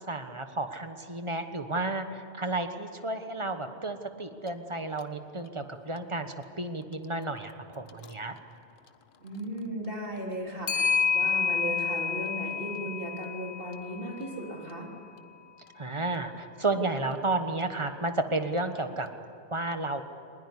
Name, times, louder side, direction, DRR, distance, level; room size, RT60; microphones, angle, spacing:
voice 1, 0.1-8.3 15.7-19.1 19.5-20.0, right 2 dB, 25° right, 7 dB, 1.3 m, -32 dB
Clock, 4.5-4.6 5.0-5.1 7.9-8.1 10.7-14.9, left 6 dB, 50° left, 1.0 m, -30 dB
voice 2, 9.2-14.9, right 1 dB, 50° right, -1 dB, 3.9 m, -36 dB
20.5 x 20.5 x 9.9 m, 2.5 s
omnidirectional pair, 1.2 m